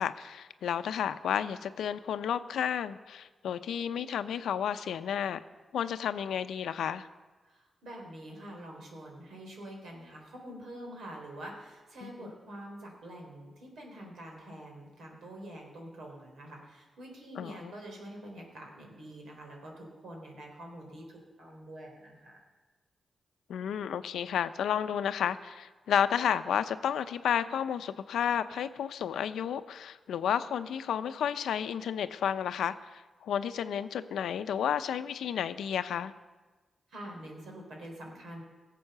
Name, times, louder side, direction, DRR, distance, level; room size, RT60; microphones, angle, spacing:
voice 1, 0.0-5.4 5.7-7.1 12.0-12.3 17.4-17.7 23.5-36.1, left 9 dB, 90° left, 11 dB, 0.5 m, -32 dB
voice 2, 7.4-21.0 21.4-22.4 36.9-38.4, right 1 dB, 80° right, 0 dB, 3.6 m, -46 dB
17.0 x 7.6 x 6.6 m, 1.3 s
cardioid pair, 60°, 0 cm